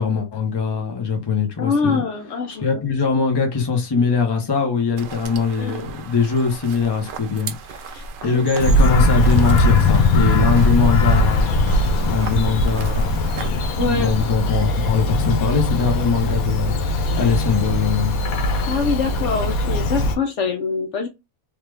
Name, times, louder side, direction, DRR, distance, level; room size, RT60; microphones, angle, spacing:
voice 1, 0.0-2.0 2.6-11.6 12.0-13.1 13.5-18.2, left 5 dB, 25° left, 0.6 m, -22 dB
voice 2, 1.6-2.6 5.6-5.9 7.9-8.5 13.8-14.1 18.7-21.1, left 5 dB, 65° left, 0.8 m, -24 dB
sound 1, 5.0-13.5, right 4 dB, 90° right, 0.4 m, -36 dB
Bird vocalization bird call bird song, 8.6-20.1, left 2 dB, 90° left, 1.1 m, -19 dB
3.4 x 2.3 x 3.3 m
omnidirectional pair, 1.5 m